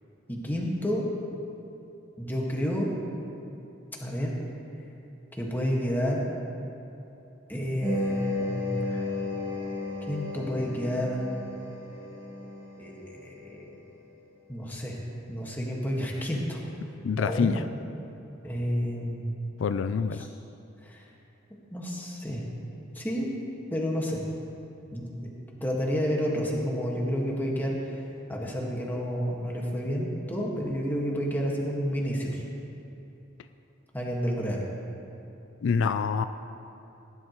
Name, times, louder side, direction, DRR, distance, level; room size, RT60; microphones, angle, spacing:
voice 1, 0.3-1.1 2.2-2.9 4.0-4.3 5.3-6.2 7.5-9.0 10.1-11.3 12.8-13.8 14.5-15.0 15.3-16.6 17.2-17.6 18.4-19.3 20.2-20.3 20.8-21.0 21.7-22.4 22.9-23.3 23.7-24.2 24.9-25.3 25.6-27.9 28.3-32.4 33.9-34.6, equal, 10° left, -2 dB, 1.6 m, -30 dB
sound 1, 7.8-13.3, left 2 dB, 15° right, 2.6 m, -33 dB
voice 2, 17.0-17.6 19.6-20.3 35.6-36.2, left 6 dB, 75° left, 11 dB, 0.3 m, -26 dB
18.0 x 11.0 x 3.0 m, 2.9 s
head